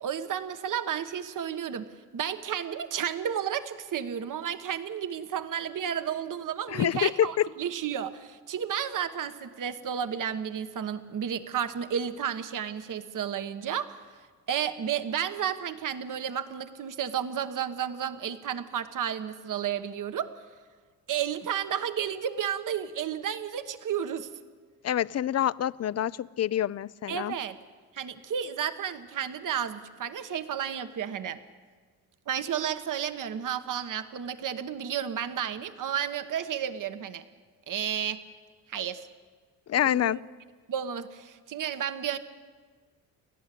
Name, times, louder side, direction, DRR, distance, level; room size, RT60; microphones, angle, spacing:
voice 1, 0.0-1.9 2.1-14.0 14.5-20.3 21.1-24.3 27.1-27.6 27.9-31.4 32.3-37.2 37.7-38.2 38.7-39.1 39.8-40.2 40.7-42.2, right 9 dB, 50° right, 10 dB, 1.3 m, -32 dB
voice 2, 6.7-7.5 24.8-27.3 39.7-40.2, left 11 dB, 40° left, 20 dB, 0.5 m, -26 dB
30.0 x 12.0 x 8.4 m, 1.5 s
cardioid pair, 85°, 39 cm